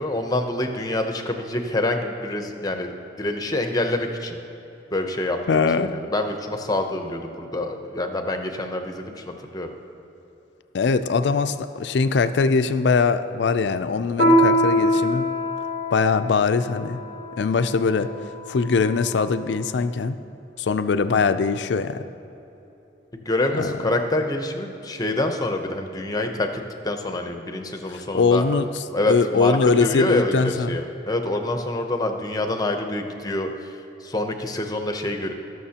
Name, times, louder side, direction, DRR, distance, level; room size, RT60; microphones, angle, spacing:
voice 1, 0.0-2.9 3.2-4.4 4.9-9.7 23.1-26.5 26.8-28.4 28.9-35.3, left 2 dB, 20° left, 5 dB, 0.7 m, -26 dB
voice 2, 5.5-5.9 10.7-15.3 15.9-17.0 17.4-18.1 18.5-20.2 20.6-22.0 23.6-23.7 28.1-28.7 29.1-30.8, left 4 dB, 70° left, 11 dB, 0.4 m, -21 dB
Piano, 14.2-19.1, equal, 50° right, 1.9 m, -23 dB
19.0 x 6.4 x 2.9 m, 3.0 s
head